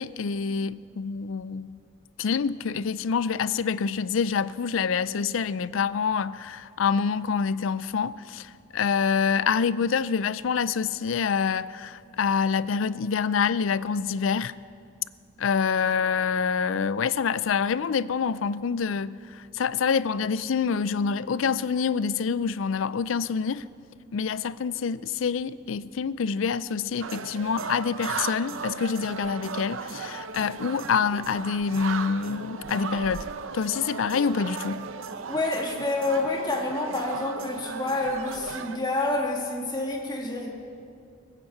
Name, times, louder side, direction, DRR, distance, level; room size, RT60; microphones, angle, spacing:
voice 1, 0.0-1.8 2.2-14.5 15.4-19.2 19.5-23.6 24.1-33.2 33.5-34.9, left 6 dB, 85° left, 0.4 m, -26 dB
sound 1, 27.0-38.8, right 5 dB, 85° right, 0.7 m, -36 dB
voice 2, 35.3-40.5, left 2 dB, 20° left, 2.1 m, -28 dB
19.5 x 8.9 x 7.9 m
head